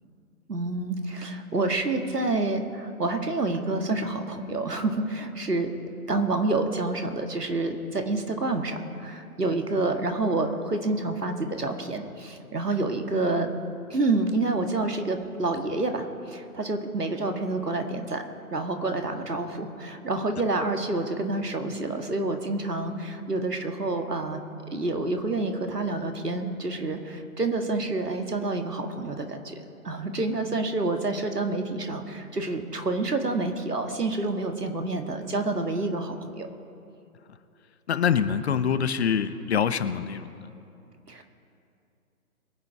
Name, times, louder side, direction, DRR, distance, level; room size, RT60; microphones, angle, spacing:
voice 1, 0.5-5.7 6.1-13.5 13.9-18.2 18.5-24.4 24.7-36.5 41.1-41.2, right 2 dB, 90° right, 5 dB, 1.7 m, -28 dB
voice 2, 37.9-40.3, left 7 dB, 45° left, 12 dB, 0.7 m, -25 dB
22.5 x 8.1 x 4.8 m, 2.6 s
figure-of-eight pair, 130°, 46 cm